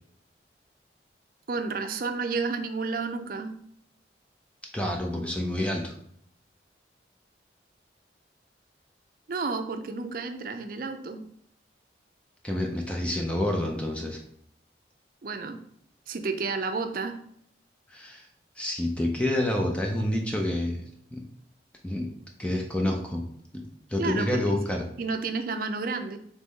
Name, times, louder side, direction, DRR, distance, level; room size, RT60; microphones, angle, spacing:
voice 1, 1.5-3.6 9.3-11.2 15.2-15.6 16.1-17.2 24.0-24.6 25.0-26.2, right 4 dB, 50° right, 7 dB, 0.5 m, -31 dB
voice 2, 4.7-5.9 12.4-14.2 17.9-18.3 18.6-20.8 21.1-21.2 21.8-22.1 22.4-23.2 23.5-23.6 23.9-24.9, left 1 dB, 5° left, 1 dB, 0.4 m, -28 dB
4.0 x 3.1 x 3.7 m, 0.68 s
head